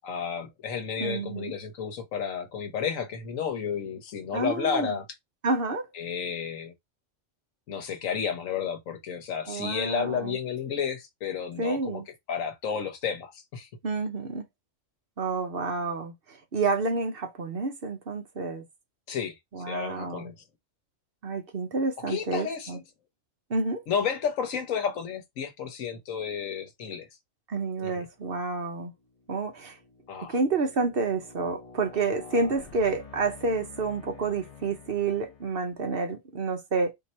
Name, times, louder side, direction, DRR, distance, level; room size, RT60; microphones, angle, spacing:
voice 1, 0.0-5.1 5.9-6.7 7.7-12.0 12.3-13.7 19.1-19.3 19.7-20.3 22.1-22.8 23.9-27.1 27.8-28.1 30.1-30.3, left 7 dB, 85° left, 1.3 m, -31 dB
voice 2, 1.0-1.5 4.3-4.9 5.4-5.9 9.5-10.4 11.6-12.1 13.8-14.5 15.2-18.6 19.5-20.3 21.2-22.8 23.5-23.8 27.5-28.9 29.3-29.7 30.3-36.9, right 3 dB, 50° right, 1.0 m, -29 dB
sound 1, 28.1-28.4 29.0-35.9, left 5 dB, 35° left, 0.6 m, -49 dB
3.7 x 2.8 x 4.2 m
omnidirectional pair, 1.3 m